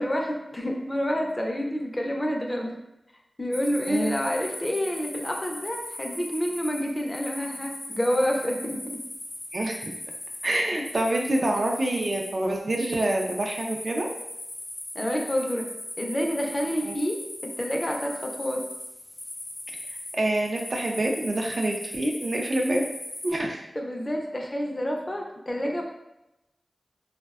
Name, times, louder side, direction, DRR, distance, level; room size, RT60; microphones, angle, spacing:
voice 1, 0.0-2.8 3.4-9.0 14.9-15.7 16.0-17.1 17.6-18.6 23.8-25.8, equal, 25° left, 1 dB, 0.4 m, -28 dB
sound 1, 3.5-23.3, left 1 dB, 70° left, 0.7 m, -39 dB
voice 2, 9.5-9.9 10.4-14.1 16.8-16.9 20.1-22.8 23.2-23.7, right 1 dB, 55° right, 1 dB, 0.4 m, -26 dB
2.5 x 2.1 x 2.3 m, 0.89 s
wide cardioid pair, 65°, 0 cm